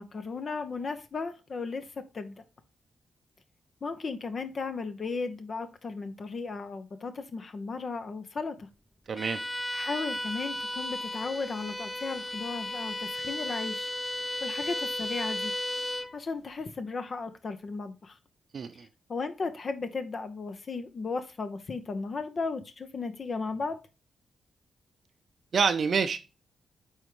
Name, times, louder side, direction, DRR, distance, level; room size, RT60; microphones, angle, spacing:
voice 1, 0.0-2.4 3.8-8.7 9.7-13.9 14.4-15.5 16.1-18.2 18.7-23.8, left 4 dB, 55° left, 0.8 m, -35 dB
voice 2, 9.1-9.4 18.5-18.9 25.5-26.2, right 5 dB, 60° right, 0.5 m, -27 dB
Bowed string instrument, 9.2-16.2, left 1 dB, 10° left, 0.6 m, -34 dB
8.9 x 3.5 x 3.1 m
supercardioid pair, 50°, 0 cm